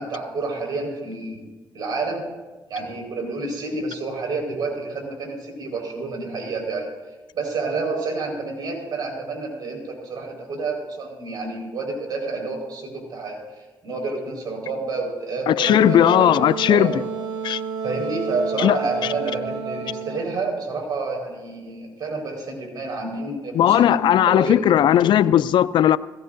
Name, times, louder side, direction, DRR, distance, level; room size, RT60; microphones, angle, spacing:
voice 1, 0.0-1.5 1.7-2.2 2.7-6.9 7.3-16.3 16.7-17.0 17.8-24.7, right 3 dB, 60° right, 4.5 m, -29 dB
voice 2, 15.5-16.9 17.4-17.6 18.6-18.8 23.5-26.0, left 11 dB, 70° left, 0.4 m, -17 dB
Wind instrument woodwind instrument, 15.7-20.3, right 5 dB, 85° right, 2.4 m, -29 dB
18.0 x 16.0 x 2.6 m
cardioid pair, 80°, 8 cm